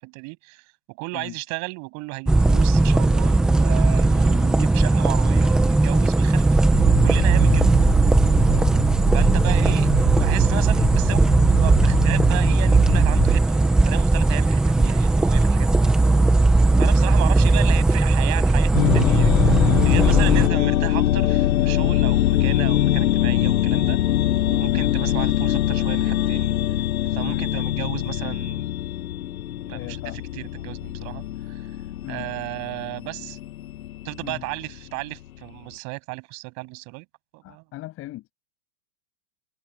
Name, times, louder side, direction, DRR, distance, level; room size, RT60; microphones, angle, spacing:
voice 1, 0.0-6.6 7.0-7.7 9.1-15.9 16.8-24.0 24.4-26.5 27.1-28.7 29.7-30.0 30.3-31.7 32.1-33.4 34.0-37.0 37.3-37.6, right 28 dB, 35° right, 6.9 m, -34 dB
sound 1, 2.3-20.5, right 2 dB, ahead, 0.4 m, -18 dB
sound 2, 6.7-13.4, right 16 dB, 60° right, 6.4 m, -27 dB
voice 2, 8.5-9.0 9.6-9.8 16.7-17.0 19.8-20.4 24.7-24.9 27.3-27.5 29.7-30.3 32.0-32.3 34.2-34.4 37.4-38.3, left 16 dB, 30° left, 7.1 m, -37 dB
sound 3, 18.7-34.8, left 13 dB, 70° left, 6.0 m, -23 dB
supercardioid pair, 150°, 45 cm